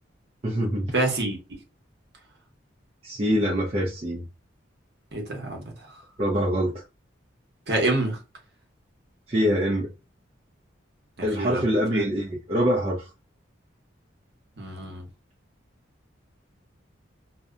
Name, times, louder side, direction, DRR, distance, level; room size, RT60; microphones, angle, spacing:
voice 1, 0.4-0.9 3.0-4.3 6.2-6.8 9.3-9.9 11.2-13.1, equal, 30° right, 0.4 m, -24 dB
voice 2, 0.9-1.4 5.1-5.9 7.7-8.2 11.2-11.6 11.9-12.1 14.6-15.1, right 2 dB, 55° right, 0.8 m, -27 dB
2.6 x 2.1 x 2.3 m
head